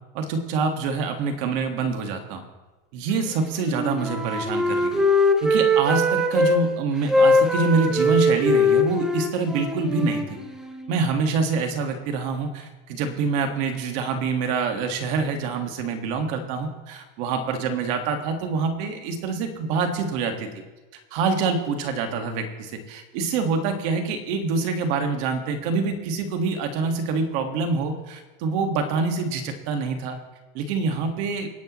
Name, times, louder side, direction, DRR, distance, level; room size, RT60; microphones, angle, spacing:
voice 1, 0.1-2.4 2.9-5.0 5.4-10.4 10.9-20.5 21.1-30.2 30.5-31.5, right 4 dB, 40° right, 5 dB, 1.8 m, -26 dB
Wind instrument woodwind instrument, 3.6-6.6 7.1-10.9, left 1 dB, ahead, 0.4 m, -21 dB
26.0 x 10.5 x 3.1 m, 1.2 s
supercardioid pair, 175°, 31 cm